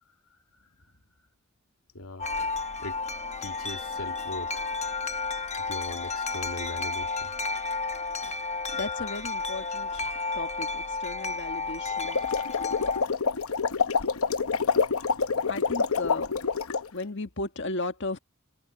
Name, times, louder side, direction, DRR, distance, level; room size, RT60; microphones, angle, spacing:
voice 1, 1.9-2.3 2.8-3.0 3.4-4.6 5.7-7.7, left 1 dB, 90° left, 2.5 m, -40 dB
Wind chime, 2.2-13.0, left 4 dB, 30° left, 0.9 m, -32 dB
voice 2, 8.7-12.2 15.5-16.3 16.9-18.2, left 2 dB, 55° left, 1.7 m, -35 dB
Blowing Bubbles, 12.0-16.9, left 5 dB, 70° left, 0.9 m, -27 dB
head